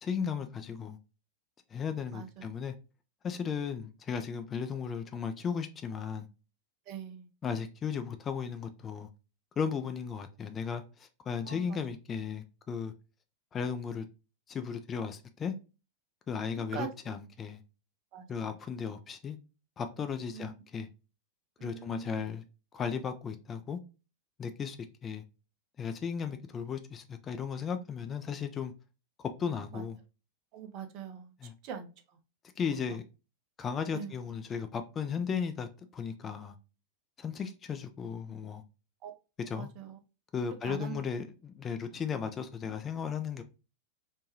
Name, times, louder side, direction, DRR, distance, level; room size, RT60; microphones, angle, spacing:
voice 1, 0.0-1.0 1.7-2.7 3.2-6.3 7.4-9.1 9.6-12.9 13.5-14.1 14.5-15.5 16.3-17.6 18.3-19.4 19.8-20.9 21.6-22.4 22.7-23.8 24.4-24.8 25.0-25.2 25.8-28.7 29.2-30.0 31.4-31.5 32.6-33.0 33.6-36.5 37.2-38.6 39.5-39.7 40.3-43.4, left 6 dB, 25° left, 0.3 m, -35 dB
voice 2, 2.1-2.5 6.9-7.3 11.4-11.8 16.7-16.9 18.1-18.5 20.3-20.5 21.6-22.2 29.7-29.8 30.5-31.9 32.9-33.0 33.9-34.2 39.0-39.1 39.5-40.0 40.6-41.0, right 8 dB, 40° right, 0.5 m, -43 dB
3.1 x 2.2 x 2.6 m
figure-of-eight pair, 90°, 0 cm